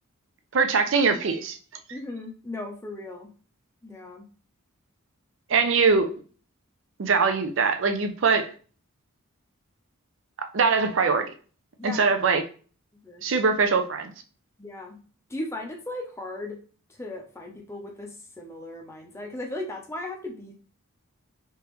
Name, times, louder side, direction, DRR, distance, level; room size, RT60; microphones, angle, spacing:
voice 1, 0.5-1.6 5.5-6.1 7.0-8.5 10.5-11.3 11.8-12.4 13.2-14.1, right 4 dB, 60° right, 7 dB, 0.5 m, -22 dB
voice 2, 1.9-3.3 3.8-4.2 11.8-12.0 13.0-13.2 14.6-15.0 15.3-16.6 17.0-20.5, left 2 dB, 10° left, 1 dB, 0.5 m, -37 dB
3.5 x 2.9 x 3.0 m, 0.39 s
head